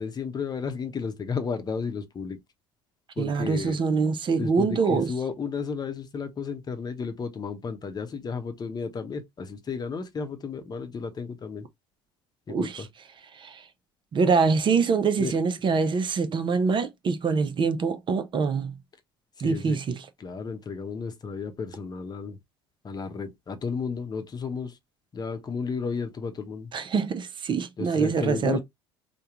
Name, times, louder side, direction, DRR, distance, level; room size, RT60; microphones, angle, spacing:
voice 1, 0.0-2.4 3.2-3.8 4.4-11.6 12.5-12.9 15.2-15.3 19.4-19.8 20.2-22.4 22.8-24.8 25.1-26.7 27.8-28.6, left 5 dB, 30° left, 0.9 m, -33 dB
voice 2, 3.2-5.1 12.5-12.8 13.3-13.6 14.1-18.8 19.4-20.0 26.7-28.6, right 5 dB, 40° right, 0.7 m, -25 dB
3.4 x 2.3 x 2.9 m
hypercardioid pair, 65°, 13 cm